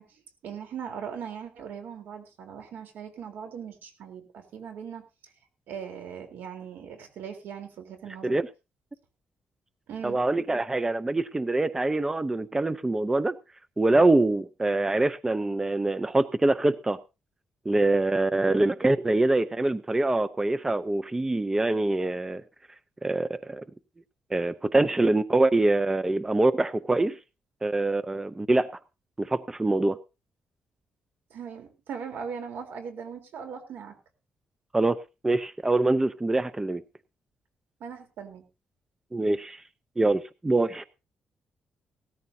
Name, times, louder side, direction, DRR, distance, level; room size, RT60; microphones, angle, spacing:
voice 1, 0.0-5.0 5.7-8.4 9.9-10.2 31.3-33.9 37.8-38.4, right 7 dB, 85° right, 3.8 m, -39 dB
voice 2, 10.0-13.4 13.8-17.0 17.7-22.4 23.0-23.6 24.3-27.2 27.6-28.7 29.2-30.0 34.7-35.0 35.2-36.8 39.1-39.6 40.0-40.8, right 2 dB, 15° right, 0.7 m, -24 dB
18.0 x 13.5 x 2.8 m
cardioid pair, 115°, 3 cm